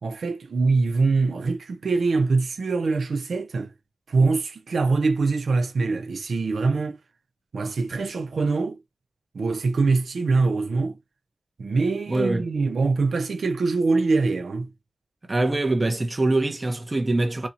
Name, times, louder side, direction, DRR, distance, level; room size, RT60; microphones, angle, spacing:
voice 1, 0.0-3.7 4.1-7.0 7.5-8.8 9.3-11.0 11.6-14.7, right 3 dB, 85° right, 0.7 m, -23 dB
voice 2, 12.1-12.5 15.3-17.5, right 2 dB, 30° right, 0.9 m, -23 dB
4.3 x 2.4 x 2.8 m
wide cardioid pair, 125°, 0 cm